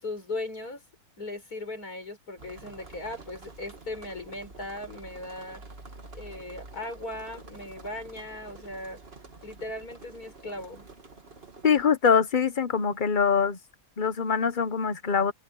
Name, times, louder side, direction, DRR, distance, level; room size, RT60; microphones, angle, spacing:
voice 1, 0.0-0.9 1.2-5.6 6.1-9.0 9.4-10.9, left 2 dB, 70° left, 7.0 m, -38 dB
sound 1, 2.4-11.9, right 3 dB, 40° right, 2.3 m, -48 dB
voice 2, 11.6-13.6 14.0-15.3, left 6 dB, 35° left, 1.0 m, -23 dB
omnidirectional pair, 1.6 m